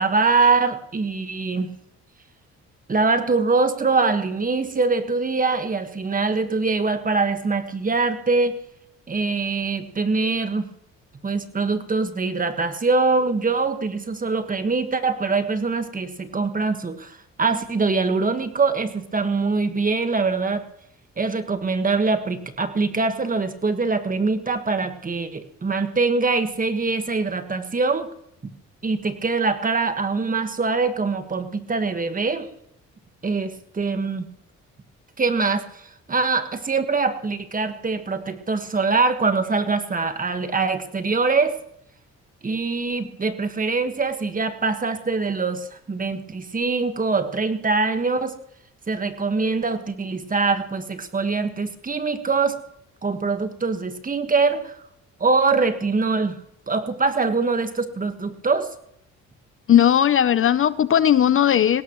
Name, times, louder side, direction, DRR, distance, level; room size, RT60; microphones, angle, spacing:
voice 1, 0.0-1.7 2.9-8.6 9.1-10.7 11.2-20.6 21.2-28.1 28.8-32.5 33.2-34.3 35.2-41.5 42.4-48.4 48.9-52.6 53.0-54.7 55.2-56.4 56.7-58.7, right 4 dB, 25° right, 8 dB, 1.5 m, -23 dB
voice 2, 59.7-61.8, left 10 dB, 45° left, 16 dB, 0.5 m, -17 dB
20.5 x 17.0 x 3.1 m, 0.75 s
cardioid pair, 90°, 30 cm